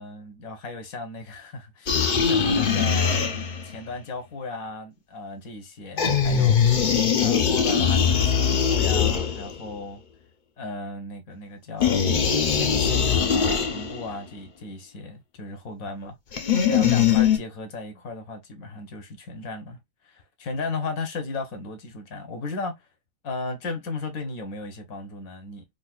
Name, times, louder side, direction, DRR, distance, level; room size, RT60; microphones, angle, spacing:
voice 1, 0.0-3.3 3.6-10.0 10.6-19.8 20.0-22.8 23.2-25.6, left 3 dB, 85° left, 1.4 m, -36 dB
sound 1, 1.9-3.7 6.0-9.7 11.8-14.1 16.3-17.4, left 7 dB, 50° left, 0.6 m, -21 dB
4.0 x 2.5 x 2.3 m
omnidirectional pair, 1.5 m